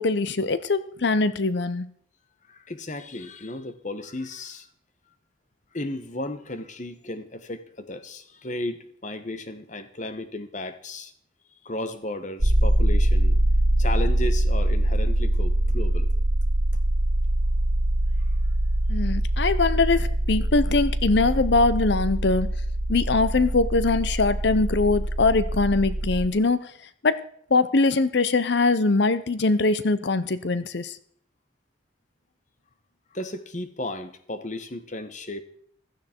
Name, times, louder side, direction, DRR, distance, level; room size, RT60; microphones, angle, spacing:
voice 1, 0.0-1.9 18.9-22.5 22.9-26.7 27.0-27.2 27.5-31.0, left 3 dB, 55° left, 14 dB, 0.7 m, -22 dB
voice 2, 2.5-4.7 5.7-11.1 11.6-13.4 13.8-16.1 18.2-18.4 33.1-35.4, left 1 dB, 35° left, 10 dB, 1.1 m, -34 dB
sound 1, 12.4-26.3, right 1 dB, 90° right, 2.0 m, -23 dB
16.0 x 12.0 x 4.4 m, 0.62 s
head